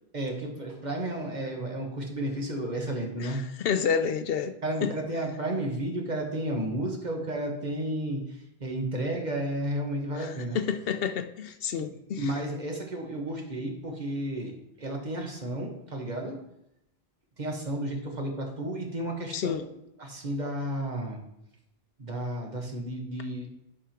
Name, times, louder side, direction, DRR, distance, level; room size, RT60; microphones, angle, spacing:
voice 1, 0.1-3.4 4.6-10.6 12.1-14.5 14.8-16.4 17.4-19.5 20.0-21.2 22.0-23.5, right 1 dB, 45° right, 1.5 m, -32 dB
voice 2, 3.2-4.6 4.8-4.9 10.2-12.3 19.3-19.6, left 7 dB, 70° left, 0.8 m, -29 dB
10.0 x 3.7 x 5.8 m
omnidirectional pair, 1.1 m